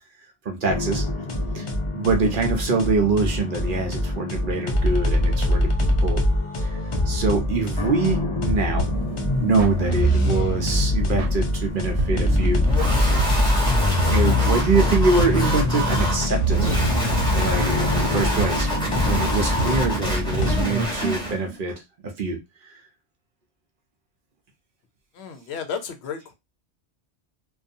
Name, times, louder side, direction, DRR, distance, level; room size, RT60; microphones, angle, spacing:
voice 1, 0.4-1.0 1.5-1.7 1.9-6.2 6.6-6.8 7.1-8.9 9.4-12.6 14.1-16.8 17.3-18.7 19.0-21.8 22.2-22.4, right 3 dB, 55° right, 0.7 m, -24 dB
sound 1, 0.7-20.6, left 2 dB, 55° left, 0.3 m, -24 dB
sound 2, 8.8-21.6, right 5 dB, 85° right, 0.9 m, -30 dB
sound 3, 12.6-21.3, equal, 5° left, 0.9 m, -27 dB
voice 2, 25.1-26.3, left 6 dB, 75° left, 0.8 m, -33 dB
2.6 x 2.3 x 2.5 m
omnidirectional pair, 1.2 m